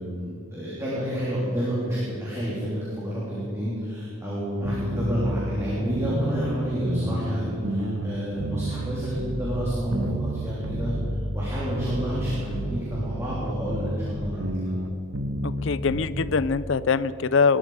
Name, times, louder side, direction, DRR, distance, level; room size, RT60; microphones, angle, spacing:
voice 1, 0.0-14.7, equal, 15° right, -8 dB, 3.3 m, -29 dB
sound 1, 4.6-16.4, right 1 dB, 75° right, 1.3 m, -30 dB
voice 2, 15.4-17.6, left 5 dB, 60° left, 17 dB, 0.5 m, -23 dB
20.5 x 12.5 x 4.9 m, 3.0 s
head